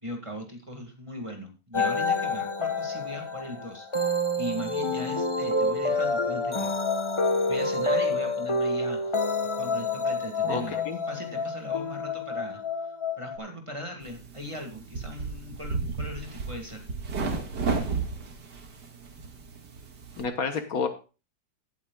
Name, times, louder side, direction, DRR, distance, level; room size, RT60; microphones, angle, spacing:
voice 1, 0.0-6.7 7.5-9.2 9.6-10.8 11.1-12.6 13.2-16.9, left 1 dB, 20° right, 3 dB, 1.8 m, -39 dB
sound 1, 1.7-13.4, left 2 dB, 20° left, 0.8 m, -28 dB
voice 2, 10.5-11.0 20.2-20.9, left 5 dB, 60° left, 7 dB, 1.6 m, -29 dB
sound 2, 14.0-20.2, right 4 dB, 90° right, 2.3 m, -33 dB
16.5 x 8.4 x 2.3 m, 0.31 s
omnidirectional pair, 1.8 m